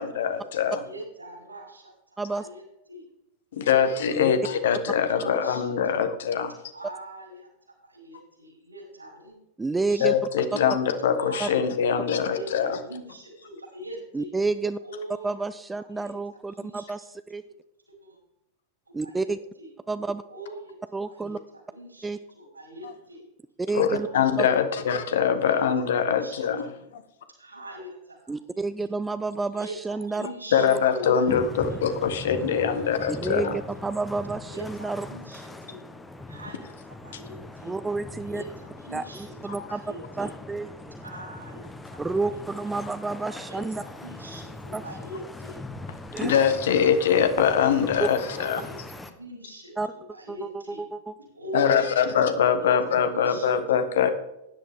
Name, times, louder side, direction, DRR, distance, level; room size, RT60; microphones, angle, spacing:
voice 1, 0.0-0.8 3.5-6.5 10.0-12.8 23.7-26.6 26.9-27.0 30.5-33.6 39.6-39.7 46.2-48.6 51.5-54.1, left 7 dB, 60° left, 10 dB, 1.2 m, -23 dB
voice 2, 0.8-2.6 2.9-3.0 3.6-4.0 4.5-4.6 5.1-6.0 6.7-7.5 7.8-9.3 9.7-10.5 11.2-14.3 14.8-15.2 15.9-16.1 16.5-16.8 17.4-17.6 18.0-18.2 19.0-19.7 20.3-20.7 21.1-23.2 23.8-24.2 24.7-24.9 25.4-25.6 26.1-26.7 27.4-28.9 29.5-31.8 32.2-33.1 33.4-33.5 34.5-35.8 36.3-37.7 38.2-40.3 41.0-42.7 43.4-45.6 46.1-46.6 47.0-47.3 48.2-50.8 51.2-52.0 52.5-52.7 53.1-53.5, right 1 dB, 85° right, -2 dB, 5.0 m, -42 dB
voice 3, 9.6-10.1 11.4-11.5 14.1-14.8 15.2-17.0 17.3-17.4 18.9-19.4 19.9-20.2 20.9-21.4 22.0-22.2 23.6-24.1 24.4-24.5 28.3-30.3 30.6-30.8 33.2-35.1 37.6-38.4 38.9-39.8 40.2-41.0 42.0-43.8 44.7-44.8 46.1-46.3 48.0-48.1 49.8-49.9 50.3-51.1, right 3 dB, 10° right, 13 dB, 0.5 m, -30 dB
sound 1, 31.3-49.1, left 2 dB, 10° left, 1.0 m, -41 dB
16.0 x 10.5 x 3.7 m, 0.87 s
figure-of-eight pair, 90°, 0 cm